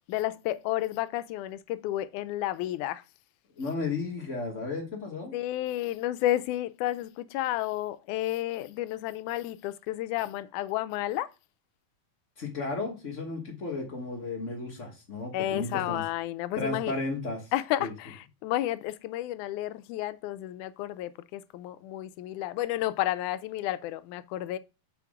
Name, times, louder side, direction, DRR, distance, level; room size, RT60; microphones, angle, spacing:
voice 1, 0.1-3.0 5.3-11.3 15.3-16.9 17.5-24.6, left 14 dB, 85° left, 2.0 m, -31 dB
voice 2, 3.6-5.3 12.4-16.0 16.6-17.4 17.8-17.9, left 3 dB, 50° left, 0.9 m, -34 dB
7.0 x 5.2 x 3.5 m
omnidirectional pair, 3.5 m